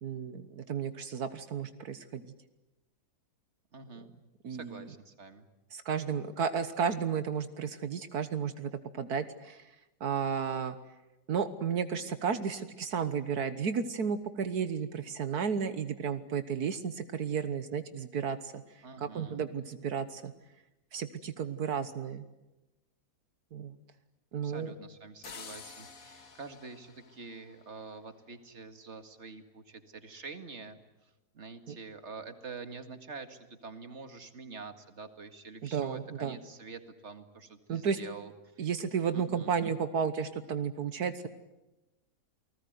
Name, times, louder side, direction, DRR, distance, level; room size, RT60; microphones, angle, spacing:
voice 1, 0.0-2.2 4.4-4.8 5.7-9.7 10.0-10.8 11.3-18.6 19.0-20.3 20.9-22.2 23.5-23.8 24.3-24.7 31.7-31.8 35.6-36.4 37.7-38.0 38.6-41.3, right 6 dB, 75° right, 11 dB, 1.7 m, -33 dB
voice 2, 3.7-4.1 4.5-5.5 18.8-19.4 24.4-38.7 39.1-39.5, right 4 dB, 45° right, 9 dB, 2.3 m, -46 dB
sound 1, 25.2-28.1, left 5 dB, 60° left, 2.1 m, -50 dB
29.0 x 20.0 x 9.4 m, 1.0 s
omnidirectional pair, 1.7 m